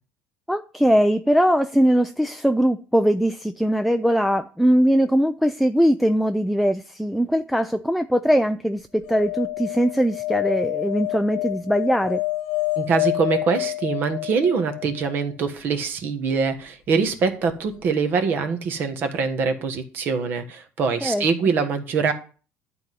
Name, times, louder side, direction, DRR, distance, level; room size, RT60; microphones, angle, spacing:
voice 1, 0.5-12.2 21.0-21.2, equal, ahead, 0.4 m, -21 dB
sound 1, 9.0-15.2 17.5-17.6 17.8-17.9, left 19 dB, 80° left, 1.1 m, -28 dB
voice 2, 12.8-22.1, right 5 dB, 45° right, 1.3 m, -24 dB
11.5 x 4.1 x 7.6 m
cardioid pair, 165°, 5 cm